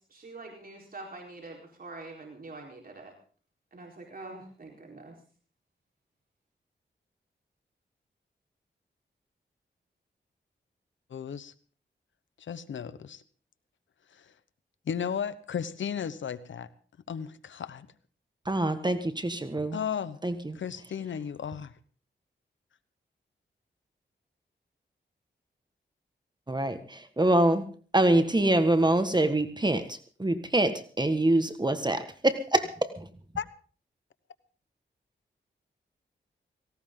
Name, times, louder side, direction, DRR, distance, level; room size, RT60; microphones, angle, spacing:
voice 1, 0.1-3.1 3.7-5.2, right 2 dB, 50° right, 0 dB, 4.3 m, -45 dB
voice 2, 11.1-11.5 12.4-13.2 14.1-14.3 14.9-16.7 17.1-17.9 19.7-20.2 20.5-21.7 33.4-33.5, left 7 dB, 80° left, 15 dB, 1.0 m, -34 dB
voice 3, 18.5-19.8 20.2-20.6 26.5-27.6 27.9-33.1, right 1 dB, 20° right, 10 dB, 1.6 m, -25 dB
18.0 x 17.0 x 3.8 m, 0.42 s
cardioid pair, 55°, 19 cm